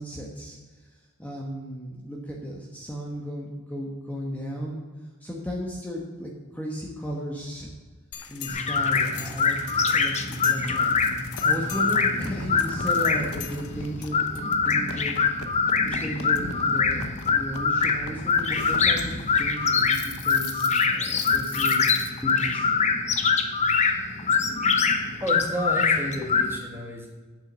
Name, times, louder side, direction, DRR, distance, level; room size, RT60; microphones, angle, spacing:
voice 1, 0.0-4.8 5.2-7.7 8.3-10.9 11.4-15.2 15.8-22.7, equal, 10° left, -2 dB, 1.2 m, -35 dB
sound 1, 8.1-22.4, left 5 dB, 85° left, 0.9 m, -40 dB
sound 2, 8.5-26.6, left 5 dB, 30° left, 0.8 m, -24 dB
voice 2, 25.2-27.1, equal, 10° right, 0 dB, 1.6 m, -31 dB
8.8 x 7.5 x 6.2 m, 1.4 s
head